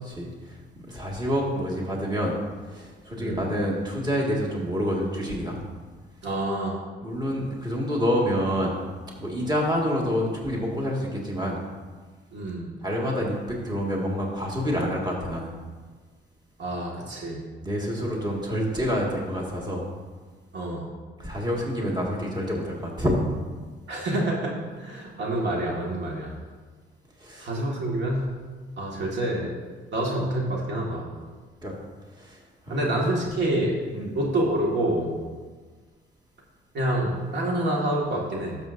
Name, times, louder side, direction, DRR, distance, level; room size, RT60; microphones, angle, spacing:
voice 1, 0.1-2.4 2.7-5.6 7.0-8.8 9.2-11.6 12.8-15.5 17.6-19.8 21.2-23.1 27.2-27.5 31.6-31.8 32.2-33.1 33.9-34.1, equal, 20° right, -3 dB, 1.9 m, -28 dB
voice 2, 6.2-6.8 12.3-12.7 16.6-17.4 20.5-20.8 23.9-26.3 27.4-28.2 28.8-29.5 29.9-31.1 32.7-33.7 34.1-35.1 36.7-38.6, right 1 dB, 60° right, -2 dB, 1.8 m, -27 dB
12.5 x 6.8 x 2.6 m, 1.4 s
cardioid pair, 90°, 20 cm